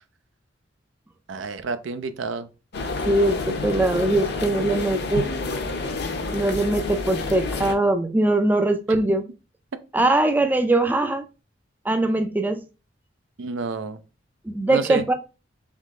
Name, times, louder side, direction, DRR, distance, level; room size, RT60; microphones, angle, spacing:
voice 1, 1.3-2.5 13.4-14.0 14.7-15.1, right 4 dB, 85° right, 0.5 m, -29 dB
sound 1, 2.7-7.7, left 3 dB, 60° left, 0.7 m, -29 dB
voice 2, 3.1-5.3 6.3-9.2 9.9-11.2 11.9-12.6 14.5-15.1, right 2 dB, 10° right, 0.3 m, -21 dB
3.6 x 3.2 x 3.7 m
head